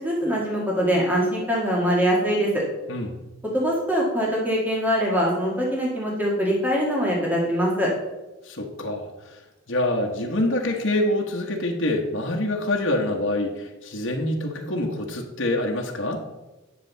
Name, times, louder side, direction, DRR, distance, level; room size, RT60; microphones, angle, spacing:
voice 1, 0.0-2.6 3.5-7.9, equal, 10° right, -4 dB, 1.7 m, -23 dB
voice 2, 2.9-3.2 8.4-9.4 9.7-16.2, left 1 dB, 70° left, 0 dB, 1.3 m, -26 dB
9.8 x 6.8 x 4.0 m, 1.1 s
head